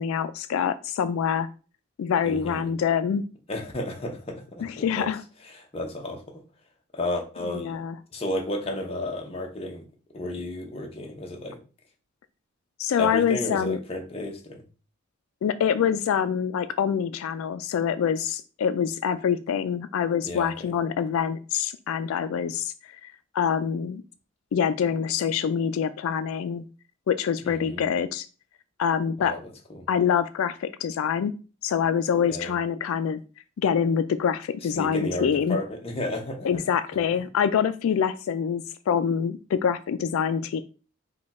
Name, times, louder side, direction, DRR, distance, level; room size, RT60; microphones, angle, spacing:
voice 1, 0.0-1.5 2.0-3.2 4.6-5.2 7.5-7.9 12.8-13.8 15.4-22.7 23.0-24.0 24.5-26.6 27.1-28.3 28.8-29.4 29.9-31.3 31.6-33.2 33.6-35.6 36.4-40.6, left 7 dB, 80° left, 12 dB, 0.3 m, -25 dB
voice 2, 2.2-2.7 3.5-5.1 5.4-6.4 6.9-7.8 8.1-9.8 10.1-11.6 13.0-14.6 20.2-20.7 27.4-27.9 29.2-29.8 32.2-32.5 34.6-36.6, left 1 dB, 30° left, 2 dB, 0.8 m, -33 dB
5.0 x 2.3 x 4.1 m, 0.35 s
head